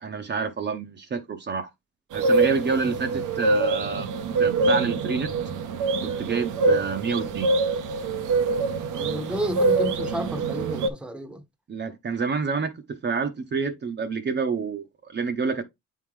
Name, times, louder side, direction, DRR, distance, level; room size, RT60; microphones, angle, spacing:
voice 1, 0.0-1.7 2.1-4.1 4.4-5.3 6.0-7.5 11.7-15.6, right 5 dB, 35° right, 0.7 m, -28 dB
sound 1, 2.1-10.9, right 3 dB, 85° right, 0.7 m, -24 dB
voice 2, 8.9-11.4, equal, 5° right, 0.8 m, -31 dB
8.1 x 3.7 x 3.1 m
cardioid pair, 90°, 30 cm